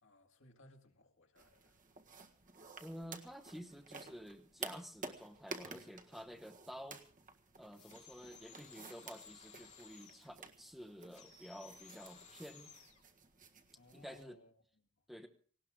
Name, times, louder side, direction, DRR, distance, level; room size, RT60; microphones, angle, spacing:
voice 1, 0.0-1.8 13.7-15.0, left 1 dB, 60° left, 2.1 m, -63 dB
sound 1, 1.3-14.2, right 4 dB, 40° right, 1.6 m, -52 dB
voice 2, 2.8-7.0 7.6-12.7 13.9-14.4 15.1-15.3, equal, ahead, 1.0 m, -51 dB
sound 2, 7.7-10.3 11.1-13.0, left 6 dB, 35° left, 3.0 m, -58 dB
18.5 x 18.0 x 3.7 m
head